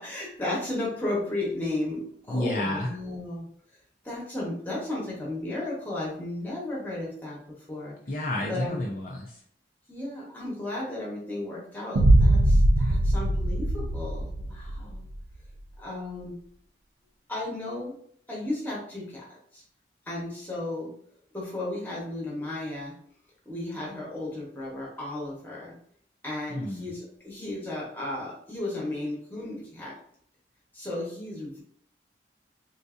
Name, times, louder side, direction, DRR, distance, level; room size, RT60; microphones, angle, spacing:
voice 1, 0.0-3.5 4.0-7.4 7.7-7.9 8.5-8.8 9.9-15.0 15.8-16.3 17.3-18.0 18.3-19.2 19.5-19.6 20.1-20.9 21.3-22.9 23.4-25.8 26.2-29.9 30.7-31.6, left 2 dB, 10° left, -5 dB, 1.1 m, -34 dB
voice 2, 2.3-2.9 8.1-9.4 26.5-26.9, left 1 dB, 45° left, -2 dB, 0.5 m, -30 dB
sound 1, 11.9-14.9, right 1 dB, 85° right, 0.5 m, -21 dB
3.8 x 2.6 x 2.4 m, 0.63 s
head